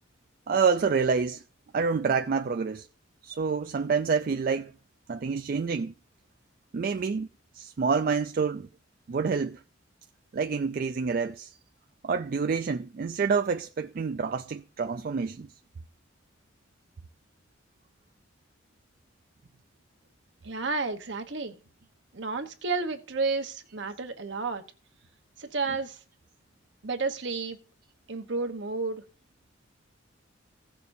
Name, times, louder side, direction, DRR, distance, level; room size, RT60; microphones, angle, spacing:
voice 1, 0.5-1.4 1.7-2.9 3.2-4.7 5.1-5.9 6.7-7.3 7.5-8.7 9.1-9.6 10.3-11.5 12.0-15.5, right 5 dB, 45° right, 0.3 m, -27 dB
voice 2, 20.4-21.5 22.1-24.6 25.4-26.0 26.8-27.6 28.1-29.0, right 3 dB, 65° right, 1.1 m, -31 dB
16.5 x 6.7 x 2.7 m
head